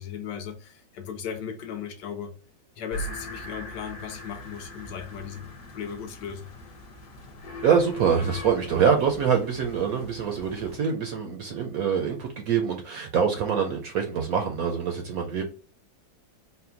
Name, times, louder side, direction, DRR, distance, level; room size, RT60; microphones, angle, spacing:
voice 1, 0.0-2.3 2.8-5.5 5.7-6.5, left 8 dB, 75° left, 1.3 m, -37 dB
sound 1, 2.9-10.8, left 1 dB, 55° left, 1.2 m, -41 dB
voice 2, 7.6-15.4, right 7 dB, 70° right, 0.8 m, -25 dB
4.1 x 2.2 x 3.8 m
omnidirectional pair, 2.0 m